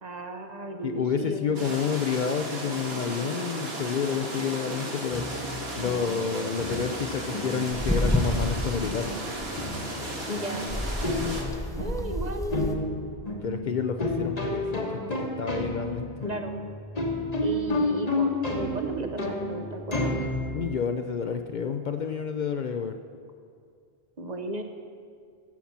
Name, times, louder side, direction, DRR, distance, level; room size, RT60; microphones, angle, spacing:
voice 1, 0.0-1.8 10.3-10.7 11.8-12.8 16.2-16.6 17.4-20.2 24.2-24.6, right 2 dB, 45° right, 5 dB, 0.9 m, -35 dB
voice 2, 0.8-5.3 5.7-9.1 13.4-16.1 20.5-23.0, left 6 dB, 55° left, 7 dB, 0.6 m, -29 dB
sound 1, 1.5-11.4, right 1 dB, 75° right, 1.9 m, -35 dB
sound 2, 5.1-20.8, left 2 dB, 40° left, 1.3 m, -32 dB
sound 3, 7.7-9.0 9.4-9.6 10.7-12.7, left 1 dB, 5° left, 0.6 m, -29 dB
15.0 x 5.8 x 7.2 m, 2.2 s
omnidirectional pair, 1.0 m